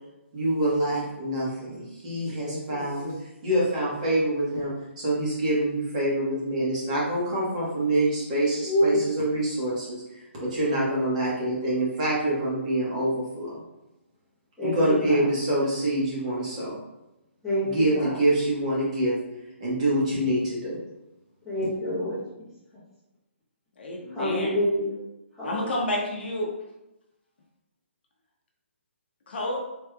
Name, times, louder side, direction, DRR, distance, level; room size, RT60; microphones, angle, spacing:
voice 1, 0.3-3.1 3.4-13.6 14.6-16.8 17.6-19.2 19.6-20.8, right 1 dB, 30° right, -6 dB, 1.2 m, -26 dB
voice 2, 2.4-3.1 8.6-9.0 14.6-15.2 17.4-17.7 17.9-18.2 21.4-22.2 24.1-24.9 25.4-25.7, equal, ahead, -13 dB, 1.0 m, -27 dB
voice 3, 23.8-24.5 25.4-26.5 29.3-29.6, left 1 dB, 55° left, -1 dB, 0.6 m, -29 dB
3.4 x 3.1 x 2.2 m, 0.94 s
hypercardioid pair, 170°, 7 cm